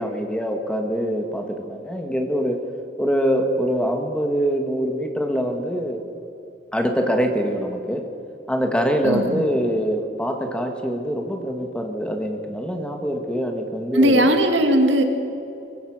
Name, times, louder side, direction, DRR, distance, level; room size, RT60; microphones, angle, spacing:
voice 1, 0.0-2.6 3.0-6.0 6.7-8.0 8.5-14.3, equal, 5° left, 4 dB, 1.7 m, -24 dB
voice 2, 9.0-9.4 13.9-15.0, right 1 dB, 75° right, 4 dB, 2.4 m, -18 dB
23.0 x 21.0 x 6.4 m, 2.7 s
head